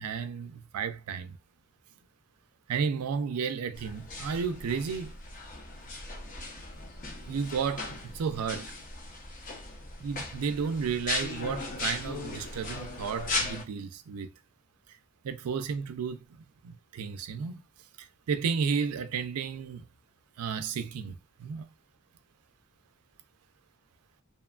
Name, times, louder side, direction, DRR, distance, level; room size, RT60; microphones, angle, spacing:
voice 1, 0.0-1.4 2.7-5.1 7.3-8.7 10.0-14.3 15.2-16.2 16.6-17.6 18.0-19.8 20.4-21.7, right 6 dB, 90° right, 0.4 m, -33 dB
sound 1, 3.8-13.6, left 2 dB, 40° left, 0.6 m, -37 dB
2.9 x 2.2 x 2.3 m
head